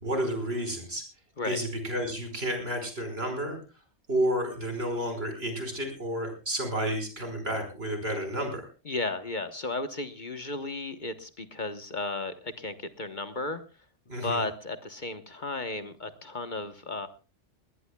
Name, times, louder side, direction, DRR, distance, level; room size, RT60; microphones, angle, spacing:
voice 1, 0.0-1.0 1.4-3.6 4.1-8.7 14.1-14.4, right 1 dB, 60° right, 6 dB, 5.4 m, -31 dB
voice 2, 8.8-13.6 14.2-17.1, left 2 dB, 45° left, 10 dB, 1.2 m, -34 dB
20.0 x 19.5 x 2.3 m, 0.33 s
omnidirectional pair, 1.2 m